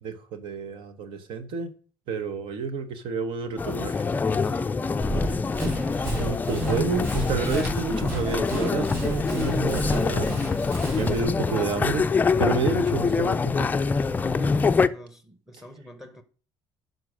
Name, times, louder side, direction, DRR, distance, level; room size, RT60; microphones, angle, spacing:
voice 1, 0.0-1.7 2.1-4.1 6.0-12.0 12.4-13.7, right 5 dB, 65° right, 1.1 m, -30 dB
sound 1, 3.6-14.9, left 4 dB, 20° left, 0.4 m, -25 dB
voice 2, 4.4-4.9 14.1-16.2, equal, 5° right, 0.8 m, -44 dB
Run, 5.0-11.2, right 1 dB, 25° right, 4.4 m, -33 dB
10.5 x 3.9 x 6.2 m
cardioid pair, 125°, 9 cm